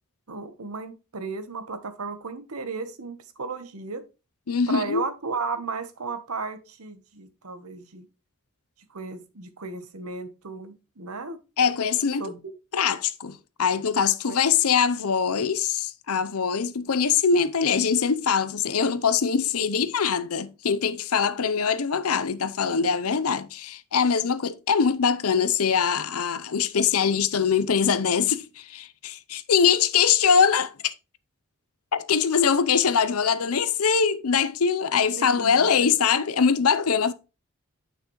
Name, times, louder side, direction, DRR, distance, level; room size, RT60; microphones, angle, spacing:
voice 1, 0.3-4.0 4.7-8.1 8.9-11.4 12.2-12.5 14.3-14.4 35.2-35.9, right 4 dB, 85° right, 1.1 m, -34 dB
voice 2, 4.5-5.0 11.6-12.2 12.7-30.9 31.9-37.1, left 6 dB, 80° left, 0.7 m, -23 dB
9.0 x 5.9 x 3.1 m
head